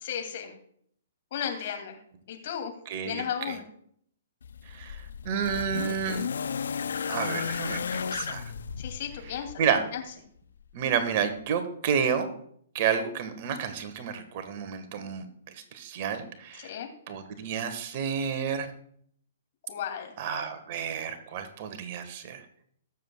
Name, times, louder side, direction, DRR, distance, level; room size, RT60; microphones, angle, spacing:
voice 1, 0.0-0.5 1.3-2.0 2.3-2.7 3.0-3.6 8.8-10.0 16.6-16.9 19.7-20.2, left 8 dB, 50° left, 4 dB, 2.5 m, -34 dB
voice 2, 2.8-3.6 4.7-6.2 7.1-8.4 9.2-9.8 10.7-12.2 12.7-15.3 15.7-16.7 17.1-18.7 20.2-22.4, right 7 dB, 45° right, 9 dB, 1.5 m, -30 dB
sound 1, 4.4-9.6 10.7-10.8, left 6 dB, 70° left, 0.5 m, -34 dB
21.0 x 7.3 x 2.3 m, 0.64 s
figure-of-eight pair, 120°, 0 cm